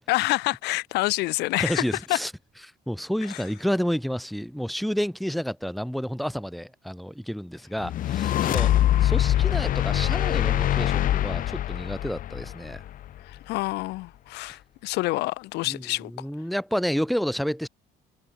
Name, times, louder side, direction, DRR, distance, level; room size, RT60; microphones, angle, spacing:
voice 1, 0.1-1.8 2.1-2.2 3.3-3.4 8.3-8.7 13.3-16.1, left 20 dB, 90° left, 1.2 m, -27 dB
voice 2, 1.6-2.3 2.9-12.8 15.7-17.7, equal, ahead, 1.5 m, -30 dB
sound 1, 7.8-13.2, left 12 dB, 55° left, 0.6 m, -24 dB
cardioid pair, 110°, 17 cm